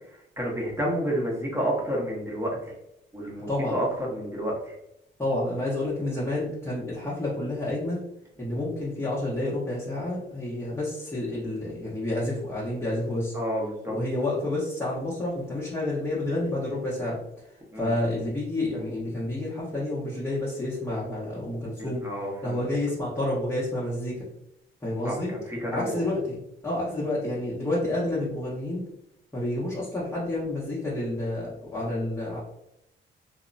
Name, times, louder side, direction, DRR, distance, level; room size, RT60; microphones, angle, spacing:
voice 1, 0.4-2.7 3.1-4.8 13.3-13.9 17.7-17.9 21.8-22.6 25.0-25.2 25.5-26.0, equal, 15° right, -3 dB, 0.9 m, -30 dB
voice 2, 3.5-3.8 5.2-8.0 8.4-13.3 13.9-17.2 17.7-22.0 22.4-24.3 24.8-25.3 25.7-26.4 26.6-28.8 29.3-32.4, left 1 dB, 10° left, -8 dB, 0.9 m, -29 dB
2.9 x 2.1 x 2.5 m, 0.82 s
cardioid pair, 90°, 20 cm